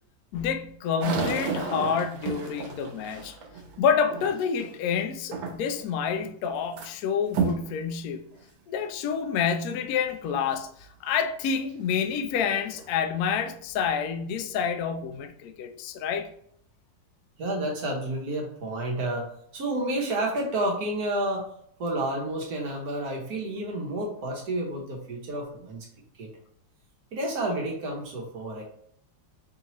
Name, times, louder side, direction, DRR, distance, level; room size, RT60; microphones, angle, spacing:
voice 1, 0.3-3.4 3.8-8.3 8.7-16.3, left 7 dB, 75° left, 0.8 m, -28 dB
sound 1, 1.0-4.8 5.3-5.9 6.2-6.9 7.3-7.7 8.3-8.4 9.1-9.2 11.7-11.8 12.3-12.9, right 4 dB, 85° right, 1.5 m, -32 dB
voice 2, 17.4-21.5 21.8-25.9 26.2-26.3 27.1-28.6, right 1 dB, 60° right, 1.2 m, -30 dB
4.7 x 2.9 x 2.9 m
omnidirectional pair, 2.0 m